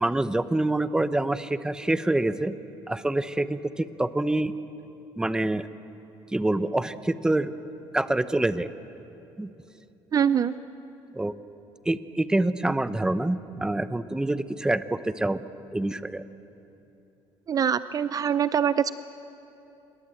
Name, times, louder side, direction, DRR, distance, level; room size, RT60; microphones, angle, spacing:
voice 1, 0.0-2.5 2.9-4.5 5.2-5.7 6.3-7.5 7.9-8.7 9.4-9.5 11.1-11.3 11.9-15.4 15.7-16.2, right 2 dB, 5° right, 13 dB, 0.8 m, -26 dB
voice 2, 10.1-10.5 17.5-18.9, right 8 dB, 40° right, 14 dB, 0.5 m, -23 dB
27.5 x 21.5 x 7.8 m, 2.9 s
cardioid pair, 115°, 10 cm